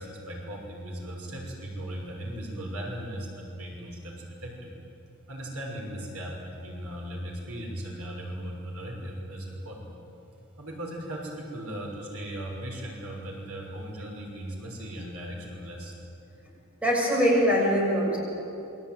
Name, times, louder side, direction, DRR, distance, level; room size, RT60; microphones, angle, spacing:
voice 1, 0.0-4.2 4.4-4.7 5.3-9.9 10.6-15.9, right 1 dB, 85° right, -1 dB, 6.2 m, -37 dB
voice 2, 16.8-18.2, equal, 5° right, -3 dB, 7.0 m, -22 dB
28.0 x 23.0 x 9.3 m, 2.9 s
head